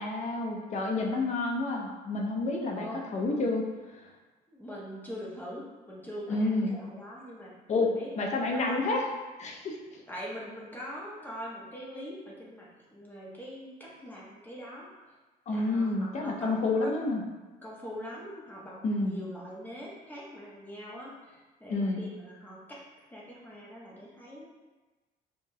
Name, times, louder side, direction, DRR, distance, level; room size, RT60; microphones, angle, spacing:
voice 1, 0.0-3.6 6.3-6.8 7.7-7.9 8.2-9.1 9.4-10.0 15.5-17.2 18.8-19.2 21.7-22.0, left 2 dB, 45° left, 0 dB, 0.6 m, -29 dB
voice 2, 2.7-3.0 4.5-8.8 10.1-14.9 15.5-17.0 17.6-22.8 23.1-24.5, equal, 10° left, -5 dB, 0.8 m, -43 dB
4.8 x 2.4 x 2.7 m, 1.2 s
cardioid pair, 110°, 17 cm